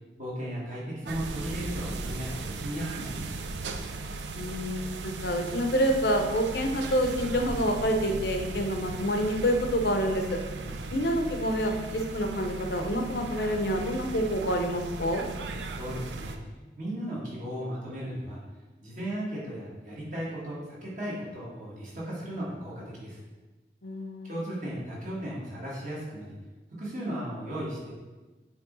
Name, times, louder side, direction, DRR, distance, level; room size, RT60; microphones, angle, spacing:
voice 1, 0.2-3.4 10.6-10.9 15.4-16.4 16.8-18.4 18.8-23.2 24.2-26.3 26.8-27.9, equal, 45° right, -6 dB, 1.8 m, -36 dB
sound 1, 1.0-16.4, right 3 dB, 85° right, 0.5 m, -37 dB
voice 2, 4.3-10.4 10.9-15.2 23.8-24.3, equal, 65° left, 4 dB, 0.7 m, -27 dB
8.3 x 3.1 x 4.0 m, 1.2 s
head